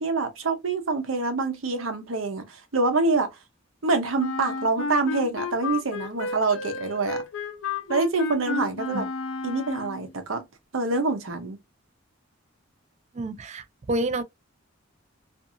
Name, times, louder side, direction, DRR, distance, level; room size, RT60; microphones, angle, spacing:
voice 1, 0.0-3.3 3.8-7.2 7.9-9.1 9.4-10.4 10.7-11.6, right 3 dB, 80° right, 0.8 m, -26 dB
Wind instrument woodwind instrument, 4.2-10.1, left 4 dB, 80° left, 0.6 m, -32 dB
voice 2, 13.1-14.2, right 1 dB, 35° right, 0.4 m, -28 dB
2.7 x 2.5 x 2.5 m
head